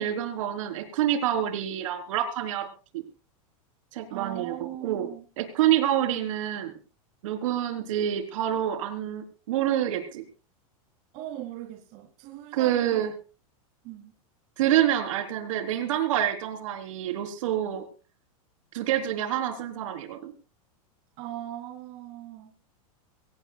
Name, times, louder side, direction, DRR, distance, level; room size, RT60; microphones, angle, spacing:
voice 1, 0.0-3.0 3.9-4.5 4.8-5.1 5.4-6.7 7.2-10.2 12.5-13.1 14.6-17.8 18.7-20.3, right 11 dB, 60° right, 7 dB, 3.9 m, -27 dB
voice 2, 4.1-5.2 11.1-13.1 13.8-14.1 21.2-22.5, right 12 dB, 35° right, 2 dB, 2.9 m, -39 dB
23.5 x 17.5 x 2.3 m, 0.34 s
supercardioid pair, 170°, 19 cm